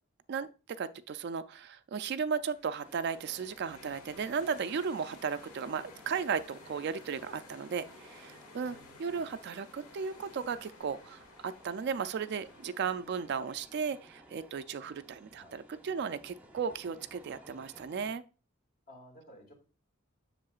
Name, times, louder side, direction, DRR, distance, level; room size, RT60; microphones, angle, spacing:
voice 1, 0.3-18.2, right 6 dB, 50° right, 0.3 m, -35 dB
sound 1, 2.3-13.6, left 3 dB, 90° left, 1.1 m, -55 dB
sound 2, 2.8-18.1, right 1 dB, 10° right, 0.7 m, -57 dB
voice 2, 8.6-9.3 15.3-15.6 18.9-19.5, equal, 45° left, 2.3 m, -55 dB
7.4 x 6.7 x 2.4 m
head